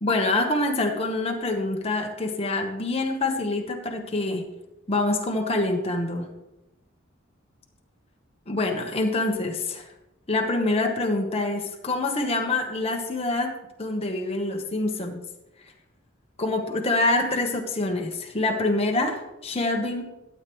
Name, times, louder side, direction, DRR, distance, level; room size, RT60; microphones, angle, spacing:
voice 1, 0.0-4.5 4.9-6.3 8.5-9.9 10.3-13.5 13.8-15.2 16.4-20.0, left 2 dB, 30° left, 2 dB, 1.2 m, -26 dB
12.5 x 8.4 x 3.2 m, 0.97 s
head